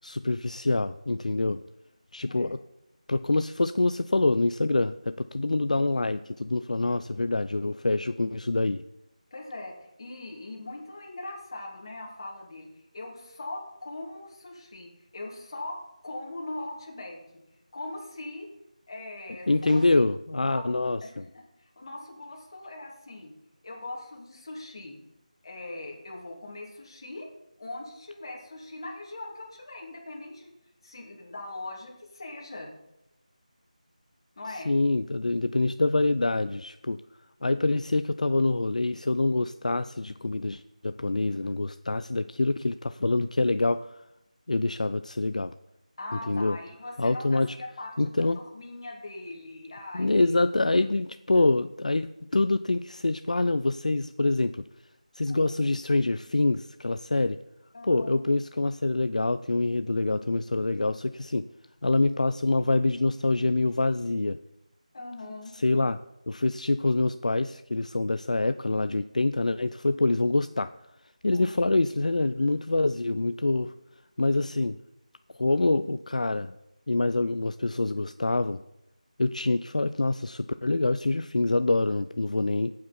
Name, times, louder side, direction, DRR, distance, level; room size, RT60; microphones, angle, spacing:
voice 1, 0.0-1.6 2.1-2.6 3.1-8.8 19.5-21.2 34.7-37.0 37.4-43.9 44.5-45.5 46.3-46.6 47.0-47.5 48.0-48.4 49.9-54.6 55.1-57.4 57.9-61.5 61.8-64.4 65.5-66.0 66.3-70.7 71.2-73.7 74.2-74.8 75.4-76.5 76.9-78.6 79.2-82.7, left 2 dB, 65° left, 11 dB, 0.4 m, -26 dB
voice 2, 9.3-12.7 12.9-15.8 16.0-17.2 17.7-18.5 18.9-19.8 20.5-20.6 21.0-21.1 21.6-23.3 23.6-25.0 25.4-27.3 27.6-30.5 30.8-32.7 34.4-34.7 46.0-50.1 50.7-50.8 51.3-51.4 55.3-55.6 57.7-58.1 64.9-65.5 71.3-71.5, left 2 dB, 35° left, -1 dB, 2.7 m, -40 dB
sound 1, 19.7-20.2, right 2 dB, 65° right, 0.7 m, -43 dB
13.0 x 8.4 x 4.3 m, 0.86 s
figure-of-eight pair, 170°, 4 cm